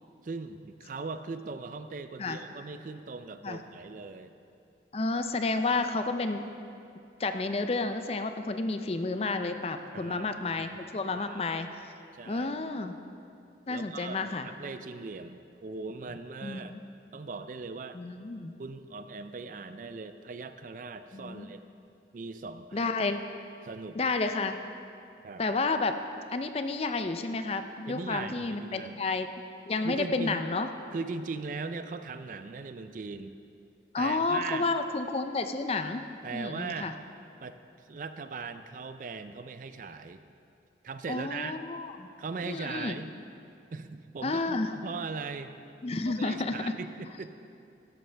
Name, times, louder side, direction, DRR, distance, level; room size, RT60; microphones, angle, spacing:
voice 1, 0.2-4.3 9.9-11.0 11.3-11.5 12.1-12.5 13.7-16.7 17.1-18.0 18.6-21.6 22.1-22.9 23.6-24.1 25.2-25.4 27.9-29.0 29.8-30.4 30.9-33.4 34.0-34.7 36.2-36.9 37.4-37.6 37.9-40.2 40.8-41.6 42.2-43.1 43.7-45.5 46.1-47.3, right 4 dB, 45° right, 10 dB, 0.4 m, -39 dB
voice 2, 4.9-6.5 7.2-11.7 12.3-13.0 13.7-14.5 16.4-16.8 17.9-18.5 21.1-21.5 22.7-23.2 23.9-24.5 25.4-26.0 26.3-29.3 29.7-30.7 33.9-36.0 36.3-36.9 41.1-42.1 42.4-43.0 44.2-44.7 45.8-46.7, left 3 dB, 35° left, 8 dB, 0.4 m, -31 dB
13.0 x 10.5 x 3.4 m, 2.6 s
head